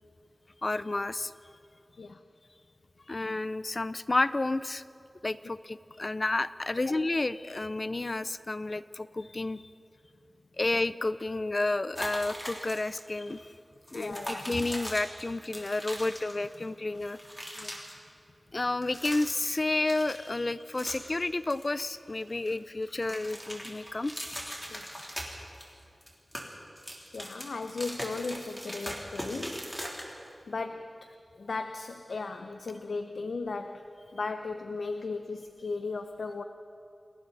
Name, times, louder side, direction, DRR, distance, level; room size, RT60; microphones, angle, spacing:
voice 1, 0.6-1.3 3.1-4.8 5.2-9.6 10.6-13.5 13.9-17.2 18.5-24.1, left 2 dB, 40° left, 14 dB, 0.6 m, -31 dB
sound 1, 11.9-13.0 13.3-13.4 13.8-16.6 16.9-17.9 18.7-19.6 19.9-21.2 21.5-22.5 22.8-25.7 26.0-30.3, equal, 10° left, 3.4 m, -40 dB
voice 2, 13.9-14.5 17.6-17.8 24.7-25.1 27.1-29.7 30.5-30.9 31.4-33.8 34.1-36.4, left 3 dB, 85° left, 7 dB, 0.8 m, -36 dB
29.5 x 22.0 x 4.1 m, 2.6 s
wide cardioid pair, 95°, 0 cm